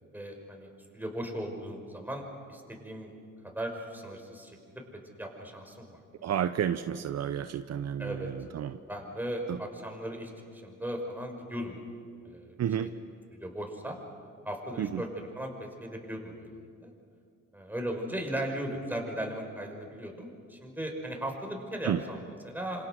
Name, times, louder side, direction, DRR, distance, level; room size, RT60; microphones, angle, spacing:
voice 1, 0.1-3.1 3.4-4.8 5.2-6.0 8.0-8.3 8.9-11.8 12.2-12.9 13.4-14.0 14.4-16.9 17.5-22.9, right 1 dB, 5° right, 2 dB, 5.7 m, -37 dB
voice 2, 6.2-8.8 9.5-9.6 12.6-12.9 14.8-15.0 21.8-22.0, right 9 dB, 60° right, 10 dB, 0.9 m, -31 dB
28.0 x 26.0 x 6.5 m, 2.3 s
cardioid pair, 90°, 30 cm